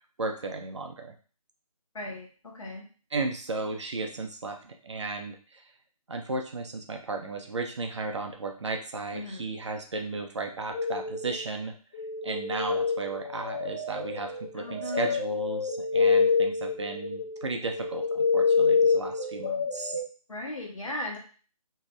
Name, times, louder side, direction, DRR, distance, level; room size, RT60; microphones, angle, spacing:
voice 1, 0.2-1.1 3.1-5.6 6.1-11.7 12.2-20.0, right 3 dB, 50° right, 3 dB, 0.5 m, -35 dB
voice 2, 1.9-2.8 9.1-9.4 14.6-15.1 20.3-21.2, left 1 dB, 60° left, -1 dB, 1.1 m, -37 dB
sound 1, 10.7-11.4 11.9-20.0, left 5 dB, 25° left, 1.1 m, -27 dB
2.7 x 2.5 x 3.1 m, 0.38 s
figure-of-eight pair, 155°, 19 cm